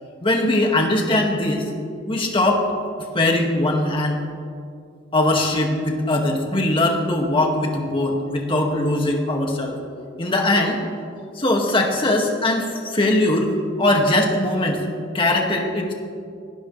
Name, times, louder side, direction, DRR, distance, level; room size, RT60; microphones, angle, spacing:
voice 1, 0.0-1.7 2.1-2.7 3.1-4.2 5.1-9.8 10.2-10.8 11.2-13.5 13.8-14.8 15.1-15.9, left 1 dB, 30° left, 1 dB, 2.1 m, -21 dB
23.5 x 18.0 x 3.4 m, 2.3 s
head